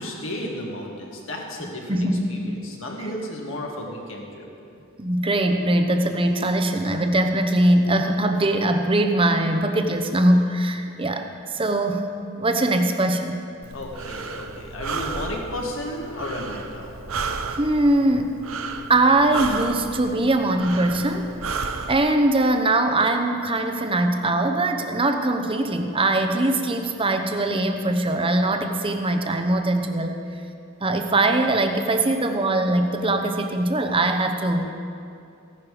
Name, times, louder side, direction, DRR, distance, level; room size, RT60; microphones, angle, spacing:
voice 1, 0.0-4.5 13.7-17.0, left 1 dB, 60° left, 0 dB, 2.0 m, -33 dB
voice 2, 1.9-2.3 3.0-3.1 5.0-12.1 12.4-13.4 17.6-18.4 18.9-21.3 21.6-30.2 30.8-34.7, right 1 dB, 25° right, 5 dB, 0.9 m, -21 dB
Breathing, 13.6-22.0, right 4 dB, 70° right, 0.8 m, -33 dB
16.0 x 11.0 x 5.0 m, 2.5 s
head